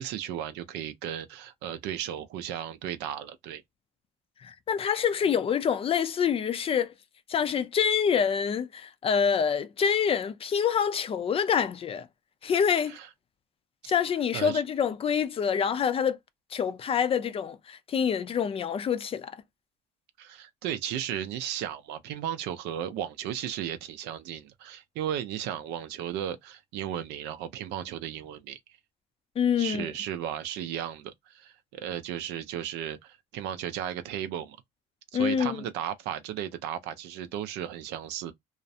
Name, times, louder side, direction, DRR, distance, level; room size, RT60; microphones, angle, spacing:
voice 1, 0.0-3.6 12.9-13.1 14.3-14.6 20.2-28.6 29.6-34.6 35.1-38.3, right 10 dB, 90° right, 0.4 m, -35 dB
voice 2, 4.4-6.9 7.3-12.1 12.4-13.0 13.9-16.2 16.5-19.3 29.4-29.9 35.1-35.6, left 7 dB, 35° left, 0.3 m, -26 dB
2.4 x 2.0 x 2.6 m
cardioid pair, 110°, 17 cm